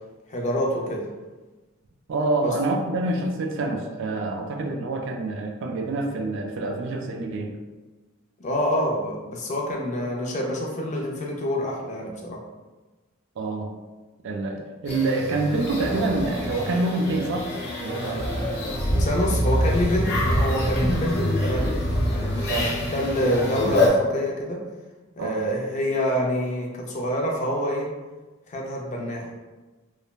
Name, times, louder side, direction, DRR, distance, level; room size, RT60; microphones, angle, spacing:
voice 1, 0.3-1.1 2.4-2.5 8.4-12.4 19.0-24.7 25.2-27.9 28.5-29.3, equal, 35° left, -1 dB, 0.4 m, -27 dB
voice 2, 2.1-7.6 13.4-13.7 14.2-17.5 17.8-18.7 22.5-22.7 25.2-25.4, right 2 dB, 60° right, 3 dB, 0.3 m, -27 dB
sound 1, 14.9-23.9, left 1 dB, 50° left, 1.0 m, -25 dB
3.1 x 2.0 x 2.3 m, 1.2 s
head